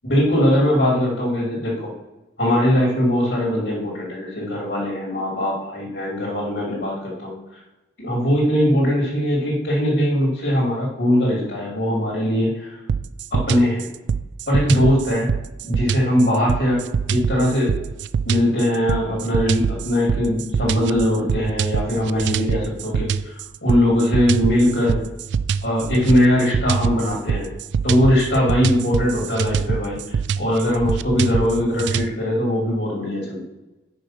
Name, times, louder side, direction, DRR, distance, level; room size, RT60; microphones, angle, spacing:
voice 1, 0.1-1.9 2.4-7.3 8.0-12.8 13.3-13.9 14.5-15.3 15.6-16.8 17.1-17.8 18.2-25.0 25.6-27.5 27.8-33.4, equal, 80° left, -4 dB, 2.4 m, -20 dB
sound 1, 12.9-32.1, right 6 dB, 75° right, 0.3 m, -24 dB
6.1 x 5.2 x 5.6 m, 1.0 s
head